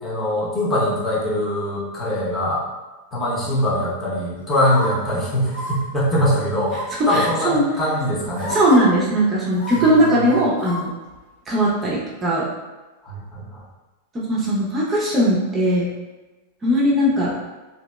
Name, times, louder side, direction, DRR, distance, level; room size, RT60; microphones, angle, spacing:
voice 1, 0.0-2.6 3.1-6.8 7.1-8.5 9.7-10.4 13.0-13.6, left 1 dB, 20° left, -6 dB, 0.9 m, -22 dB
sound 1, 4.5-4.9 5.5-5.7 6.6-7.0 7.9-8.0 8.4-8.8 9.5-10.8 11.1-11.2, left 1 dB, 75° left, 1.0 m, -30 dB
voice 2, 7.1-7.6 8.5-10.9 11.5-12.4 14.1-15.9 16.6-17.3, equal, 25° right, -6 dB, 0.6 m, -19 dB
2.8 x 2.8 x 2.2 m, 1.2 s
figure-of-eight pair, 90°, 0 cm